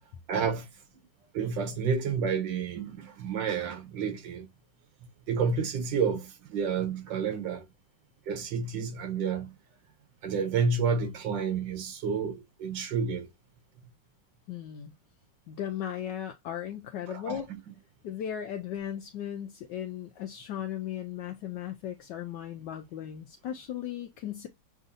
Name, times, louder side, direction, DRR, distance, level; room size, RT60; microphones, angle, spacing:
voice 1, 0.3-0.7 1.3-4.5 5.3-7.7 8.3-9.6 10.2-13.3 17.1-17.7, right 5 dB, 75° right, 1.7 m, -30 dB
voice 2, 14.5-14.9 15.5-17.5 18.0-24.5, left 10 dB, 75° left, 1.2 m, -37 dB
7.1 x 2.7 x 2.6 m
omnidirectional pair, 2.0 m